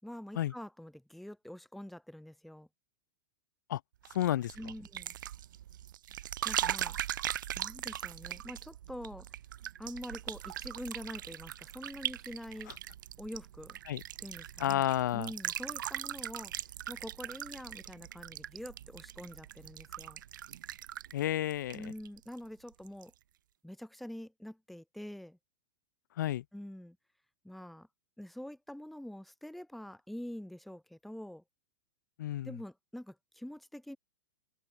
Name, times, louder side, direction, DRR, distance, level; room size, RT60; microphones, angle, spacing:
voice 1, 0.0-2.7 4.6-5.1 6.4-7.0 7.5-9.3 9.8-12.7 13.2-13.8 14.2-14.8 15.1-20.2 21.7-23.1 23.6-25.4 26.5-27.0 27.4-27.9 28.2-31.4 32.4-34.0, left 1 dB, ahead, 4.1 m, -45 dB
sound 1, 4.0-22.4 22.7-23.1, right 12 dB, 70° right, 4.7 m, -40 dB
voice 2, 4.1-4.5 13.9-14.0 14.6-15.3 21.1-21.9 26.2-26.4 32.2-32.5, left 13 dB, 60° left, 5.7 m, -31 dB
open air
supercardioid pair, 175°, 11 cm